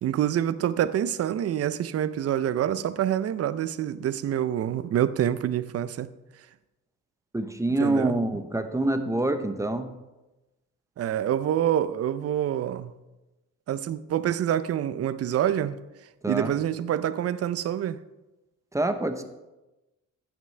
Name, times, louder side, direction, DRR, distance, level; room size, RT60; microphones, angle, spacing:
voice 1, 0.0-6.1 7.8-8.2 11.0-12.9 13.7-15.8 16.3-18.0, right 10 dB, 55° right, 0.5 m, -26 dB
voice 2, 7.3-9.9 16.2-16.5 18.7-19.2, right 2 dB, 10° right, 0.8 m, -26 dB
14.5 x 6.0 x 3.3 m
cardioid pair, 90°, 30 cm